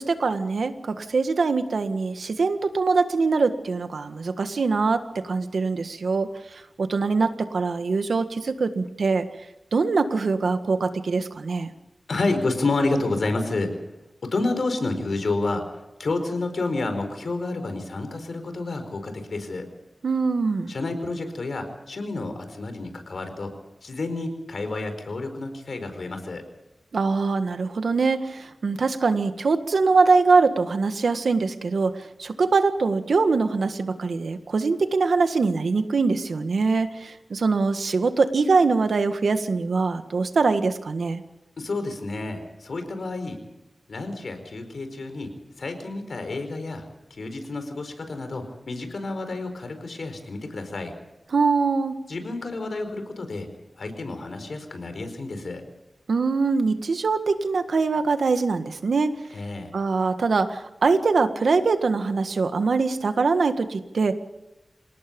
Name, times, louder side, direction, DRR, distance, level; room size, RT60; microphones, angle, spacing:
voice 1, 0.0-6.3 6.8-9.3 9.7-11.7 20.0-20.7 26.9-31.9 32.2-41.2 51.3-52.0 56.1-59.1 59.7-64.1, right 4 dB, 90° right, 8 dB, 1.7 m, -23 dB
voice 2, 12.1-13.8 14.2-15.7 16.0-19.7 20.7-23.5 23.8-26.4 41.6-43.4 43.9-45.3 45.6-46.8 47.1-50.9 52.1-53.5 53.8-55.6 59.3-59.7, left 2 dB, 75° left, 7 dB, 4.6 m, -29 dB
27.5 x 18.5 x 5.4 m, 1.0 s
wide cardioid pair, 80°, 0 cm